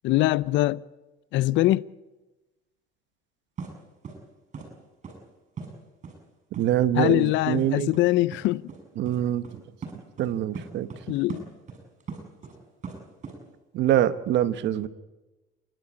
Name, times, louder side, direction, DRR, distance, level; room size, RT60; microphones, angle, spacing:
voice 1, 0.0-0.8 1.3-1.9 7.0-8.6 11.1-11.4, left 17 dB, 65° left, 0.6 m, -23 dB
sound 1, 3.6-3.7 4.0-4.2 4.5-4.7 5.0-5.2 5.6-5.7 6.0-6.1 6.5-6.7 7.0-7.1 7.5-7.6 7.9-8.0 8.3-8.4 8.7-8.8 9.1-9.2 9.4-9.5 9.8-10.3 10.5-11.0 11.3-12.5 12.8-13.4, right 5 dB, 35° right, 7.7 m, -38 dB
voice 2, 6.6-7.9 9.0-9.6 10.2-10.9 13.7-14.9, right 11 dB, 60° right, 1.3 m, -24 dB
28.5 x 12.5 x 8.8 m
cardioid pair, 115°, 21 cm